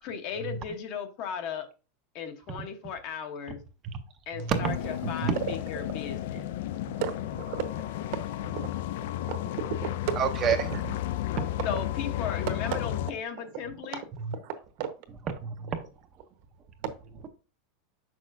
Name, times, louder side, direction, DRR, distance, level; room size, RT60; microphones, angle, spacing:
voice 1, 0.0-1.7 2.1-3.6 4.3-6.4 11.6-14.0, left 7 dB, 40° left, 0.9 m, -36 dB
voice 2, 4.3-4.8 5.0-5.3 10.2-10.6 15.4-15.8, right 7 dB, 25° right, 0.6 m, -28 dB
sound 1, 4.6-13.1, left 13 dB, 65° left, 0.4 m, -33 dB
voice 3, 5.2-5.6 5.8-6.4 6.9-10.2 10.5-10.8 11.6-11.7 12.5-12.8 13.1-14.0 14.3-14.9, right 9 dB, 55° right, 1.0 m, -36 dB
7.1 x 6.2 x 2.5 m
supercardioid pair, 170°, 0 cm